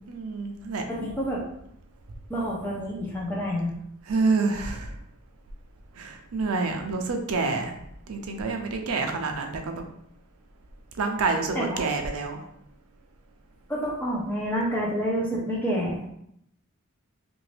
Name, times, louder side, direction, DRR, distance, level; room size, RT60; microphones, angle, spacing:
voice 1, 0.1-0.8 4.1-4.9 6.0-7.7 8.1-9.8 11.0-12.4, right 4 dB, 85° right, 4 dB, 0.5 m, -27 dB
voice 2, 0.9-1.4 2.3-3.7 11.5-11.8 13.7-16.0, equal, 10° left, -5 dB, 0.8 m, -28 dB
2.8 x 2.6 x 3.2 m, 0.73 s
head